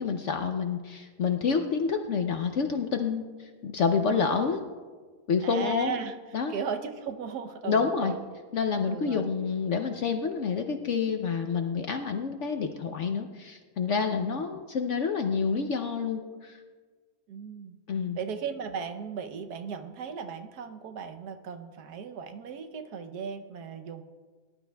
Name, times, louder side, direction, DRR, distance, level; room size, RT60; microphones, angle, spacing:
voice 1, 0.0-4.6 5.3-5.9 6.3-6.5 7.6-8.1 8.5-16.6 17.9-18.2, left 5 dB, 60° left, 6 dB, 0.8 m, -28 dB
voice 2, 5.4-6.1 6.5-8.3 8.8-9.3 14.2-14.5 17.3-17.8 18.2-24.0, right 6 dB, 75° right, 7 dB, 1.3 m, -36 dB
19.0 x 12.0 x 2.3 m, 1.4 s
omnidirectional pair, 1.8 m